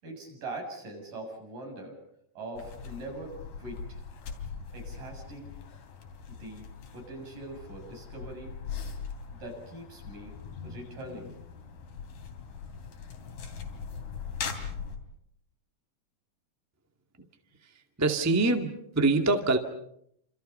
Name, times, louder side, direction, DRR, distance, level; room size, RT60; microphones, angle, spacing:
voice 1, 0.0-2.0 2.4-4.0 4.7-5.5 6.3-6.7 6.9-8.5 9.3-10.4 10.6-11.4, right 2 dB, 70° right, 2 dB, 8.9 m, -42 dB
sound 1, 2.6-15.0, left 6 dB, 85° left, 4.8 m, -41 dB
voice 2, 18.0-19.6, right 3 dB, 5° right, 5 dB, 1.2 m, -24 dB
29.5 x 27.5 x 5.6 m, 0.73 s
omnidirectional pair, 3.9 m